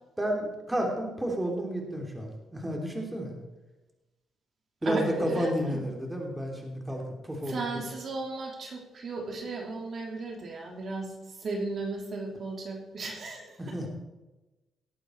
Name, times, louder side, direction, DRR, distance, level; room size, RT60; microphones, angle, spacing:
voice 1, 0.2-3.4 4.8-7.8 13.6-13.9, equal, 10° right, 1 dB, 3.3 m, -31 dB
voice 2, 4.8-5.8 7.5-13.7, right 3 dB, 50° right, 1 dB, 3.0 m, -35 dB
18.5 x 8.5 x 4.7 m, 1.1 s
cardioid pair, 90°, 0 cm